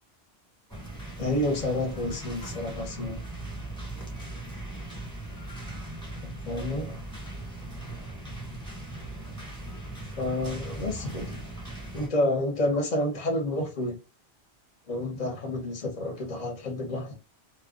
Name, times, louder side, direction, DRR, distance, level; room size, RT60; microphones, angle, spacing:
sound 1, 0.7-12.1, right 2 dB, 5° left, 1.1 m, -39 dB
voice 1, 1.2-3.2 6.4-7.0 10.2-11.3 11.9-14.0 14.9-17.2, left 1 dB, 40° left, 0.9 m, -29 dB
2.2 x 2.2 x 3.6 m
omnidirectional pair, 1.1 m